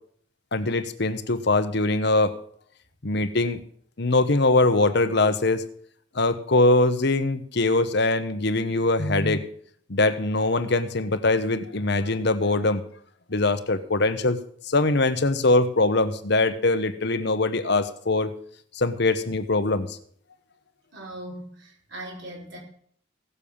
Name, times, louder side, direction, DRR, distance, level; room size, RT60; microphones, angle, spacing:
voice 1, 0.5-2.3 3.0-3.6 4.0-5.6 6.1-9.4 9.9-12.8 13.3-14.4 14.6-18.3 18.7-20.0, left 2 dB, 60° left, 11 dB, 1.1 m, -22 dB
voice 2, 20.9-22.6, right 1 dB, 70° right, -3 dB, 6.0 m, -39 dB
17.0 x 7.0 x 7.1 m, 0.62 s
head